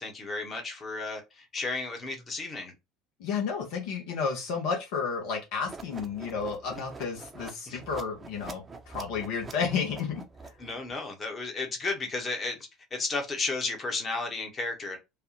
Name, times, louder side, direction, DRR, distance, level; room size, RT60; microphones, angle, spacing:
voice 1, 0.0-2.7 7.7-7.8 10.6-12.6 12.9-15.0, left 3 dB, 30° left, 1.2 m, -33 dB
voice 2, 3.2-10.2, left 5 dB, 65° left, 0.9 m, -32 dB
sound 1, 5.7-10.9, right 4 dB, 25° right, 0.7 m, -45 dB
3.3 x 2.3 x 2.9 m
hypercardioid pair, 65°, 0 cm